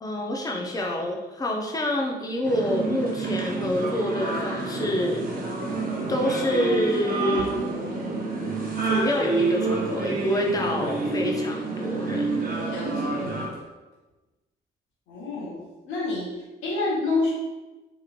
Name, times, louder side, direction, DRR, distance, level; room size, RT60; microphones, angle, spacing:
voice 1, 0.0-5.2 6.1-7.6 8.8-12.3, left 1 dB, 20° left, 1 dB, 0.5 m, -27 dB
sound 1, 2.4-13.5, right 2 dB, 45° right, 0.7 m, -28 dB
voice 2, 12.7-13.2 15.1-17.3, left 3 dB, 80° left, -8 dB, 1.1 m, -28 dB
3.0 x 2.8 x 2.4 m, 1.1 s
cardioid pair, 90°, 20 cm